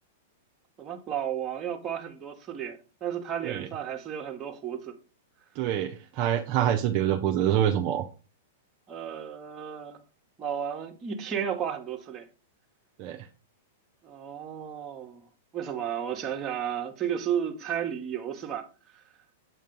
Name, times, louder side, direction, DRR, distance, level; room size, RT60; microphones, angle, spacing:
voice 1, 0.8-5.0 8.9-10.0 10.4-12.3 14.0-15.3 15.5-18.7 18.9-19.0, right 9 dB, 30° right, 1.1 m, -33 dB
voice 2, 5.6-8.0 13.0-13.2, right 10 dB, 45° right, 0.6 m, -26 dB
7.7 x 2.6 x 5.2 m
hypercardioid pair, 105°, 0 cm